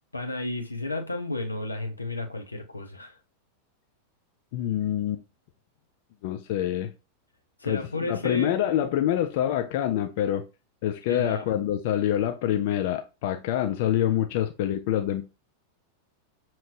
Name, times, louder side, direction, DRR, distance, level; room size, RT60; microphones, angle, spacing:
voice 1, 0.1-3.2 7.6-8.5 11.1-11.6, left 2 dB, 80° left, 0.8 m, -32 dB
voice 2, 4.5-5.2 6.2-6.9 7.6-10.4 10.8-15.2, left 11 dB, 50° left, 0.4 m, -26 dB
6.2 x 2.9 x 2.6 m
figure-of-eight pair, 90°, 0 cm